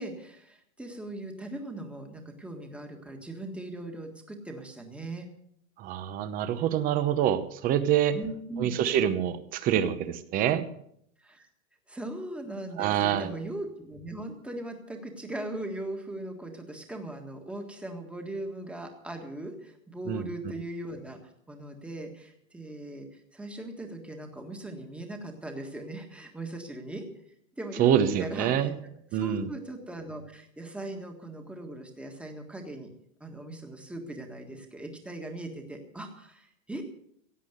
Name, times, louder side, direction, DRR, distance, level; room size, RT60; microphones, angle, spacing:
voice 1, 0.0-5.3 8.1-8.7 11.2-11.5 11.9-21.2 21.5-27.0 27.6-28.9 29.2-32.9 33.2-36.8, right 1 dB, 5° right, 3 dB, 1.6 m, -39 dB
voice 2, 5.8-8.2 8.6-10.6 12.8-13.3 20.1-20.2 27.8-28.7 29.1-29.5, right 10 dB, 20° right, 12 dB, 0.9 m, -26 dB
17.0 x 8.4 x 8.0 m, 0.72 s
supercardioid pair, 165°, 40 cm